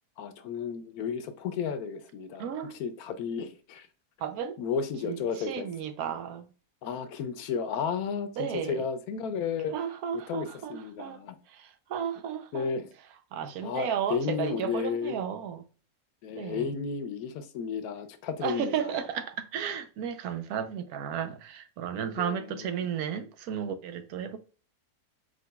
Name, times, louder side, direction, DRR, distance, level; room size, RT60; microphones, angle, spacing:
voice 1, 0.2-3.9 4.6-5.7 6.8-9.8 10.3-11.4 12.5-12.9 13.6-15.2 16.2-19.0 22.2-22.7, left 6 dB, 85° left, 1.1 m, -33 dB
voice 2, 2.4-2.8 4.2-4.6 5.0-6.5 8.4-8.8 9.7-12.7 13.3-15.6 16.4-16.8 18.4-24.4, right 8 dB, 85° right, 1.1 m, -34 dB
4.6 x 3.8 x 2.3 m
omnidirectional pair, 1.5 m